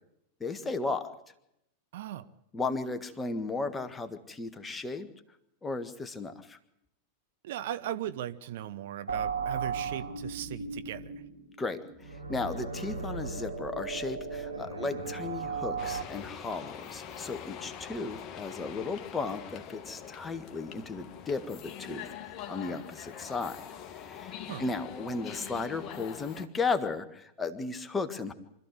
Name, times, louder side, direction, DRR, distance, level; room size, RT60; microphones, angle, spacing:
voice 1, 0.4-1.1 2.5-5.1 5.6-6.6 11.6-22.1 22.5-23.6 23.9-24.3 24.6-28.3, left 3 dB, 15° left, 1.7 m, -35 dB
voice 2, 1.9-2.3 7.4-11.2 24.5-24.7, right 11 dB, 55° right, 0.8 m, -38 dB
sound 1, 9.1-16.0, right 5 dB, 85° right, 2.8 m, -36 dB
Inside a train staion with train coming and going, 15.8-26.5, left 8 dB, 30° left, 2.0 m, -44 dB
25.5 x 14.0 x 7.9 m
figure-of-eight pair, 90°, 0 cm